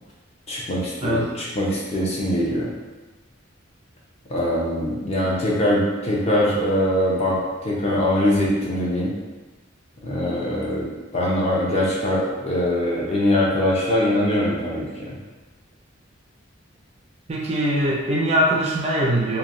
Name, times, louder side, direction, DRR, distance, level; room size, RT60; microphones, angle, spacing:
voice 1, 0.5-2.7 4.3-9.1 10.0-15.2, left 1 dB, 30° left, -5 dB, 0.6 m, -22 dB
voice 2, 17.3-19.4, equal, 30° right, -3 dB, 0.4 m, -22 dB
3.0 x 2.2 x 2.5 m, 1.2 s
head